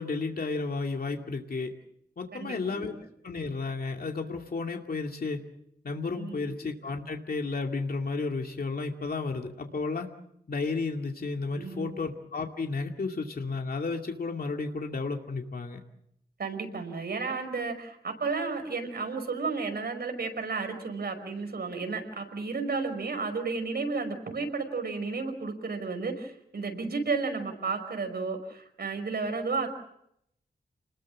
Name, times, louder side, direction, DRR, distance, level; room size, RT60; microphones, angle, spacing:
voice 1, 0.0-1.7 2.2-3.0 3.2-5.4 5.8-10.1 10.5-15.8, left 4 dB, 65° left, 3 dB, 2.4 m, -32 dB
voice 2, 2.3-2.9 6.1-6.5 11.5-11.9 16.4-29.7, right 4 dB, 80° right, 6 dB, 5.3 m, -32 dB
30.0 x 21.0 x 7.4 m, 0.75 s
wide cardioid pair, 110°, 16 cm